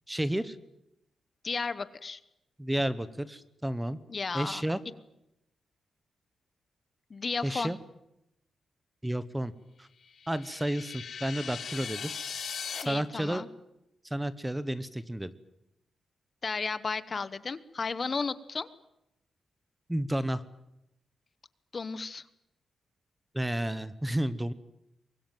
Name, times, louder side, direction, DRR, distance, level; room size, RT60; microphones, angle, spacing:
voice 1, 0.1-0.6 2.6-4.0 4.3-4.8 7.4-7.8 9.0-9.5 9.8-9.9 10.3-12.1 12.8-13.4 14.0-15.3 19.9-20.4 23.3-24.5, right 1 dB, 5° right, 14 dB, 1.0 m, -31 dB
voice 2, 1.4-2.2 4.1-4.6 7.1-7.7 12.8-13.5 16.4-18.7 21.7-22.3, left 4 dB, 30° left, 15 dB, 1.0 m, -33 dB
sound 1, 10.1-12.8, left 7 dB, 55° left, 2.3 m, -39 dB
24.0 x 22.0 x 9.1 m, 0.84 s
wide cardioid pair, 150°, 0 cm